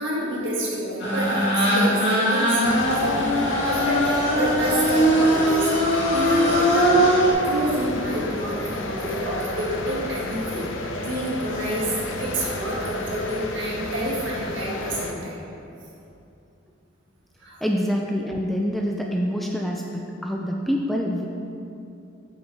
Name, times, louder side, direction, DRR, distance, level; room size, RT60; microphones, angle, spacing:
voice 1, 0.0-7.0 7.4-11.9 12.2-15.4 17.4-17.6, right 1 dB, 70° right, -5 dB, 1.9 m, -28 dB
sound 1, 1.0-7.3, equal, 60° left, 1.7 m, -21 dB
sound 2, 2.6-15.1, left 2 dB, 75° left, 0.6 m, -30 dB
voice 2, 17.6-21.3, equal, ahead, 0 dB, 0.3 m, -26 dB
8.0 x 7.0 x 3.3 m, 2.7 s
head